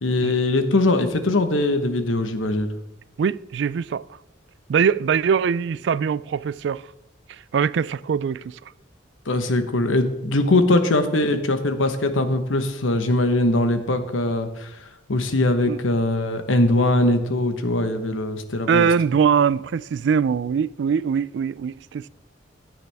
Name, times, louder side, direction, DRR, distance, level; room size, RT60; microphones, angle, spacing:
voice 1, 0.0-2.7 9.3-14.8 15.1-18.9, left 2 dB, 90° left, 1.2 m, -21 dB
voice 2, 3.2-4.1 4.7-6.8 7.3-8.6 15.7-15.8 18.7-22.1, right 6 dB, 65° right, 0.3 m, -22 dB
15.0 x 9.3 x 3.5 m
head